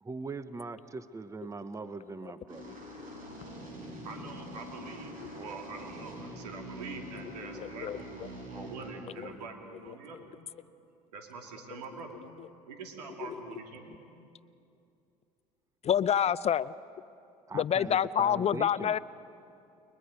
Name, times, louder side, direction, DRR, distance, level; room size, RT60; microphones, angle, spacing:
voice 1, 0.0-2.6 17.5-19.0, right 3 dB, 15° right, 13 dB, 0.8 m, -41 dB
sound 1, 2.5-8.9, equal, 40° right, 7.9 m, -44 dB
voice 2, 3.1-8.2 8.5-10.3 11.1-12.2 12.7-14.0, right 4 dB, 80° right, 3 dB, 2.8 m, -45 dB
voice 3, 7.6-8.0 9.2-9.3 15.8-16.7 17.5-19.0, left 9 dB, 30° left, 18 dB, 0.5 m, -27 dB
29.5 x 22.5 x 5.2 m, 2.6 s
hypercardioid pair, 65°, 20 cm